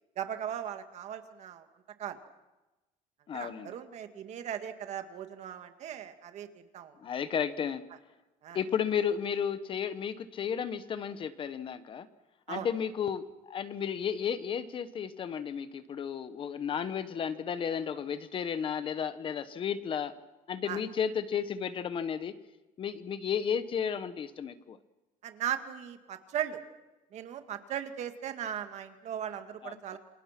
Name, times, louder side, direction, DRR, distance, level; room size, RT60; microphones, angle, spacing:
voice 1, 0.2-1.6 2.0-2.2 3.3-6.9 8.4-8.6 12.5-12.7 20.7-20.8 25.2-26.6 27.1-30.0, right 10 dB, 55° right, 7 dB, 2.1 m, -38 dB
voice 2, 3.3-3.7 7.0-7.8 8.5-12.1 12.5-20.1 20.5-22.3 22.8-24.8 29.6-30.0, left 7 dB, 40° left, 13 dB, 1.1 m, -33 dB
28.5 x 26.5 x 6.0 m, 1.1 s
cardioid pair, 165°, 14 cm